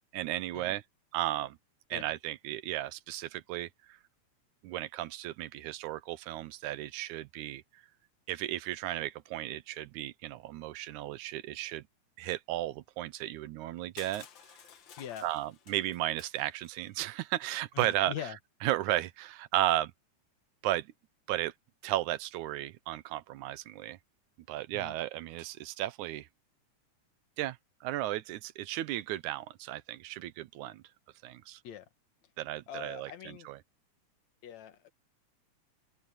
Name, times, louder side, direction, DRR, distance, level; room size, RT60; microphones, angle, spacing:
voice 1, 0.1-0.8 1.1-1.6 1.9-4.0 4.6-7.8 8.3-11.8 12.2-14.3 15.2-18.1 18.6-19.9 20.6-20.9 21.3-21.5 21.8-24.0 24.5-26.3 27.4-30.8 31.2-31.6 32.4-33.6, right 14 dB, 90° right, 2.2 m, -34 dB
Crushing, 14.0-16.9, left 8 dB, 50° left, 1.7 m, -54 dB
voice 2, 15.0-15.3 17.7-18.4 24.7-25.0 31.6-31.9 32.7-33.5 34.4-34.9, left 10 dB, 70° left, 2.8 m, -42 dB
omnidirectional pair, 3.4 m